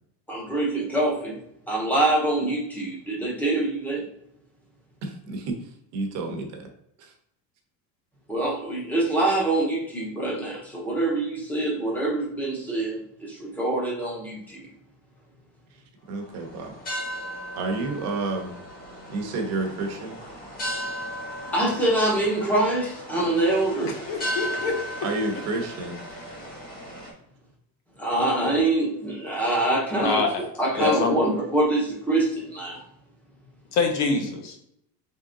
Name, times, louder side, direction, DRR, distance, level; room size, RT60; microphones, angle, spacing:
voice 1, 0.3-1.3 1.7-4.0 8.3-14.6 21.5-23.9 28.0-30.3 30.6-32.8, right 2 dB, 5° left, -3 dB, 0.7 m, -25 dB
voice 2, 5.0-5.6 5.9-6.7 7.0-7.1 16.1-16.8 17.6-18.5 19.1-20.2 25.0-26.0, right 3 dB, 40° right, 3 dB, 0.8 m, -30 dB
sound 1, 16.2-27.1, equal, 20° left, 1.2 m, -36 dB
voice 3, 23.8-24.8 29.9-30.4 30.7-31.2 33.7-34.5, left 5 dB, 40° left, 4 dB, 0.8 m, -25 dB
3.7 x 3.3 x 3.7 m, 0.74 s
cardioid pair, 180°, 42 cm